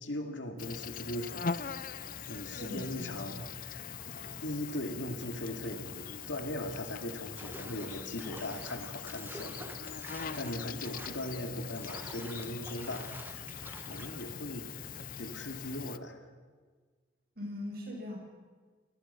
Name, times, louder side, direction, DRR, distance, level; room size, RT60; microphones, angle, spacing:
voice 1, 0.0-1.8 2.3-13.4 13.9-14.8 15.2-16.3, left 1 dB, 90° left, 5 dB, 2.6 m, -39 dB
Insect, 0.6-16.0, left 6 dB, 50° left, 0.6 m, -42 dB
voice 2, 2.5-3.2 17.4-18.2, left 1 dB, 55° right, 0 dB, 7.0 m, -40 dB
sound 1, 3.9-4.4 4.7-4.8 5.2-6.2 6.7-6.8 7.1-7.4 7.7-7.9 8.3-9.2 9.9-10.0 10.3-10.6 11.0-11.1 11.6-12.7, left 3 dB, 65° left, 6.8 m, -59 dB
sound 2, 7.4-14.3, right 2 dB, 10° right, 1.2 m, -50 dB
27.5 x 19.5 x 5.9 m, 1.5 s
head